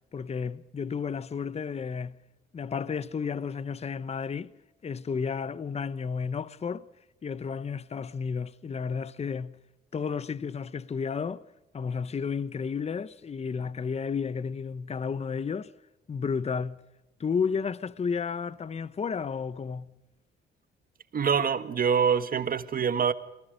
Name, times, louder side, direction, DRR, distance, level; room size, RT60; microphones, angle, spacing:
voice 1, 0.1-2.2 2.5-4.5 4.8-6.8 7.2-9.6 9.9-11.4 11.7-15.7 16.1-16.8 17.2-19.9, left 6 dB, 30° left, 0.8 m, -32 dB
voice 2, 21.1-23.1, right 7 dB, 45° right, 1.5 m, -25 dB
28.0 x 19.0 x 5.2 m
cardioid pair, 90°, 20 cm